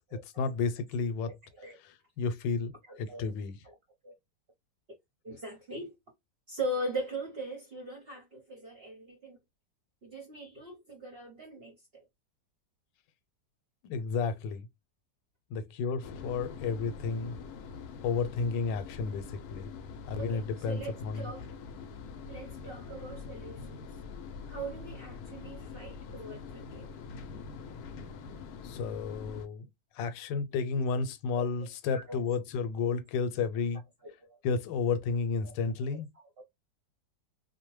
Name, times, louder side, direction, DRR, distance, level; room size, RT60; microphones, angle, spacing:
voice 1, 0.1-1.3 1.8-2.7 3.0-3.6 13.8-14.7 15.5-17.4 18.0-19.7 20.1-21.3 28.6-29.7 29.9-33.8 34.4-36.1, left 5 dB, 90° left, 1.2 m, -32 dB
voice 2, 2.9-3.3 3.6-3.7 4.0-4.2 5.2-5.9 6.5-9.4 10.0-12.0 20.1-21.4 22.3-23.9 24.5-26.9 31.3-31.5 31.9-32.2 32.8-32.9 34.0-34.4 35.4-35.5 35.9-36.0 36.4-36.5, right 1 dB, 55° right, 0.7 m, -40 dB
sound 1, 16.0-29.5, left 5 dB, 70° left, 1.0 m, -44 dB
2.8 x 2.1 x 3.0 m
omnidirectional pair, 1.9 m